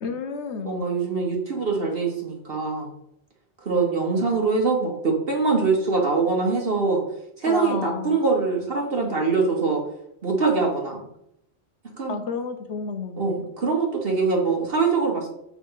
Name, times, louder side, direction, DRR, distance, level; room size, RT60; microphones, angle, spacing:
voice 1, 0.0-0.8 7.5-8.2 12.1-13.5, left 5 dB, 70° left, 7 dB, 1.2 m, -31 dB
voice 2, 0.6-2.9 3.6-7.0 7.4-9.8 10.2-11.0 12.0-12.2 13.2-15.3, right 4 dB, 55° right, -1 dB, 1.3 m, -23 dB
7.3 x 3.6 x 5.6 m, 0.77 s
omnidirectional pair, 1.2 m